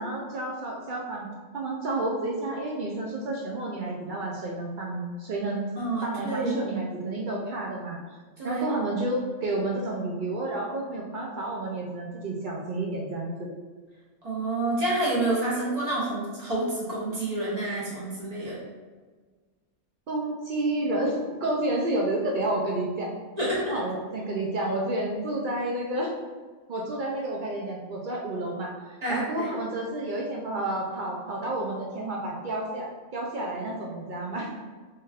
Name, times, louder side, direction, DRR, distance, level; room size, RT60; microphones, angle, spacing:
voice 1, 0.0-5.6 6.0-8.0 8.4-13.5 20.1-23.1 23.4-26.1 26.7-34.5, right 2 dB, 70° right, -2 dB, 0.4 m, -30 dB
voice 2, 5.8-6.5 8.4-8.6 14.2-18.5 23.4-23.6 29.0-29.5, right 2 dB, 35° right, -7 dB, 1.0 m, -28 dB
4.4 x 2.9 x 2.4 m, 1.4 s
omnidirectional pair, 1.4 m